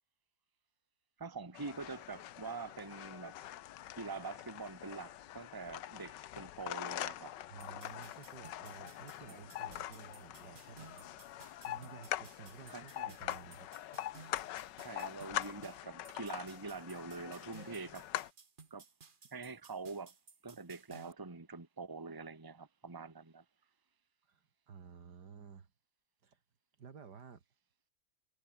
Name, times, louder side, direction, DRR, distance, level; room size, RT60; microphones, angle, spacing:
voice 1, 1.2-3.4 4.0-7.3 9.3-9.4 12.7-13.2 14.8-18.1 18.7-18.8 19.3-20.1 20.4-23.4, right 4 dB, 15° right, 1.5 m, -45 dB
sound 1, 1.5-18.3, left 13 dB, 85° left, 1.4 m, -44 dB
voice 2, 7.5-11.1 11.6-13.7 24.2-25.7 26.2-26.4 26.8-27.4, right 6 dB, 70° right, 2.5 m, -53 dB
sound 2, 7.6-21.1, right 5 dB, 30° right, 1.3 m, -58 dB
omnidirectional pair, 1.9 m